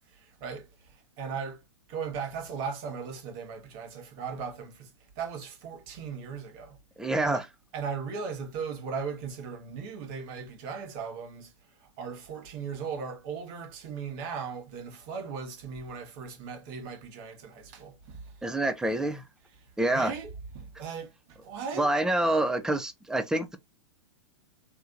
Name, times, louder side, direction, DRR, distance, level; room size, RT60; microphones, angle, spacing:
voice 1, 0.0-1.6 1.9-6.8 7.2-7.5 7.7-18.5 18.8-19.0 19.6-21.9 22.2-22.3, right 6 dB, 50° right, 1.3 m, -38 dB
voice 2, 7.0-7.4 18.4-19.2 19.8-20.1 21.8-23.6, right 1 dB, 5° right, 0.5 m, -27 dB
3.3 x 2.9 x 2.5 m
hypercardioid pair, 115°, 16 cm